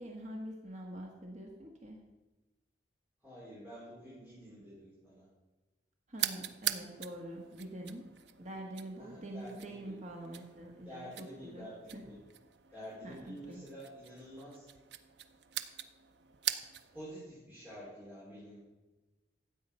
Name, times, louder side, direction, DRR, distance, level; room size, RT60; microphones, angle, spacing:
voice 1, 0.0-2.0 6.1-8.0 8.4-12.0 13.0-13.6, right 1 dB, 40° right, 0 dB, 1.5 m, -45 dB
voice 2, 3.2-5.2 9.0-10.0 10.8-12.1 12.7-14.6 16.9-18.6, equal, 10° right, -10 dB, 4.8 m, -49 dB
sound 1, 6.1-17.0, right 11 dB, 70° right, 0.6 m, -43 dB
12.5 x 8.6 x 5.4 m, 1.1 s
head